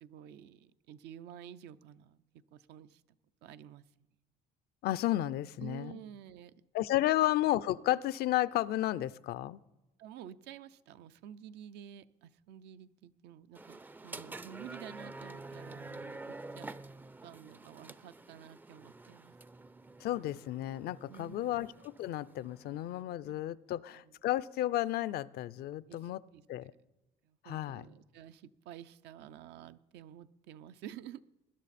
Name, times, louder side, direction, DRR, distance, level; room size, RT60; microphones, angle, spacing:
voice 1, 0.0-2.2 2.5-3.0 3.4-3.8 5.6-6.5 10.0-16.7 17.2-19.3 21.1-21.6 23.3-23.4 23.9-24.1 25.9-26.4 27.2-31.2, right 10 dB, 80° right, 12 dB, 0.6 m, -50 dB
voice 2, 4.8-6.0 6.7-9.6 20.0-26.2 26.5-26.7 27.4-27.8, left 14 dB, 70° left, 17 dB, 0.5 m, -32 dB
sound 1, 13.5-23.0, right 2 dB, 10° right, 0.4 m, -48 dB
20.0 x 10.5 x 4.2 m, 1.0 s
cardioid pair, 110°, 17 cm